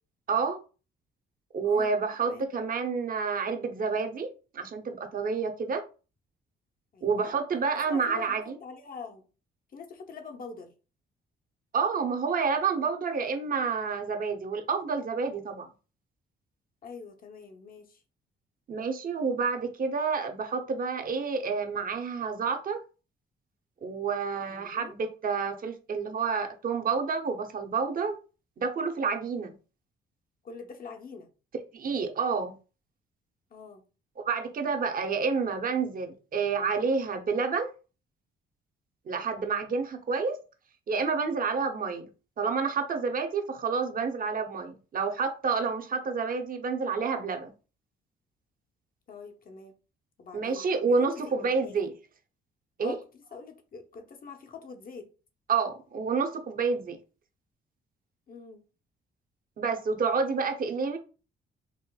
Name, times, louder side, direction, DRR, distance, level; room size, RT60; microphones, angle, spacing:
voice 1, 0.3-0.6 1.5-4.3 4.5-5.8 7.0-8.6 11.7-15.7 18.7-22.8 23.8-28.2 28.6-29.6 31.7-32.5 34.2-37.7 39.1-40.4 40.9-42.1 42.4-47.5 50.3-51.9 52.8-53.0 55.5-57.0 59.6-61.0, right 5 dB, 45° right, 0.8 m, -29 dB
voice 2, 6.9-7.3 7.9-9.2 9.7-10.7 16.8-18.0 24.5-24.9 30.4-31.3 33.5-33.8 49.1-49.7 50.2-51.7 52.8-55.1 58.3-58.7, left 5 dB, 45° left, 0.8 m, -44 dB
4.3 x 2.6 x 2.3 m
cardioid pair, 90°, 20 cm